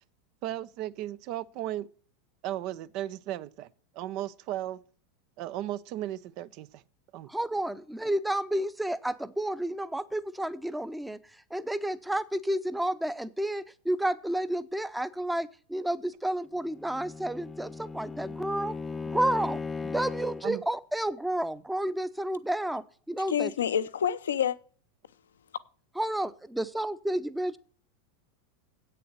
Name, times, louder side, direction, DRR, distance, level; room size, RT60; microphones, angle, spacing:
voice 1, 0.4-1.9 2.4-4.8 5.4-6.8 7.1-7.3 20.4-20.6, right 13 dB, 50° right, 0.6 m, -35 dB
voice 2, 7.3-11.2 11.5-18.7 19.1-23.5 26.0-27.6, right 1 dB, 5° right, 0.8 m, -31 dB
Bowed string instrument, 16.7-20.6, left 4 dB, 15° left, 0.4 m, -37 dB
voice 3, 23.3-24.6, left 9 dB, 75° left, 0.7 m, -27 dB
8.5 x 6.7 x 8.1 m
figure-of-eight pair, 90°, 0 cm